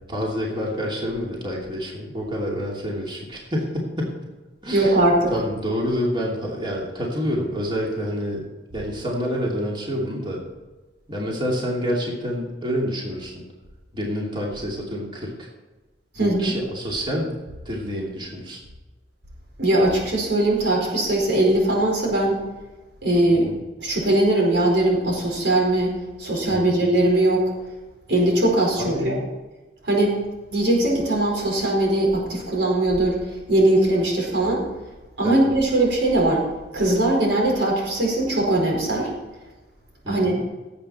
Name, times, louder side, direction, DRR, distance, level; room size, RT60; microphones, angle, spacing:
voice 1, 0.1-4.2 4.6-5.0 5.3-8.5 8.7-10.4 11.1-13.4 13.9-15.5 16.2-17.3 17.6-18.6 23.3-23.5 26.5-26.8 28.8-29.2 35.2-35.5 40.0-40.4, equal, 30° right, -3 dB, 2.8 m, -28 dB
voice 2, 4.7-5.3 16.1-16.5 19.6-22.4 23.0-23.5 23.8-25.9 26.2-27.5 28.1-29.1 29.8-30.1 30.5-33.2 33.5-34.6 35.2-36.4 36.7-39.1 40.1-40.3, right 1 dB, 85° right, -2 dB, 4.8 m, -20 dB
18.5 x 8.2 x 4.4 m, 1.2 s
head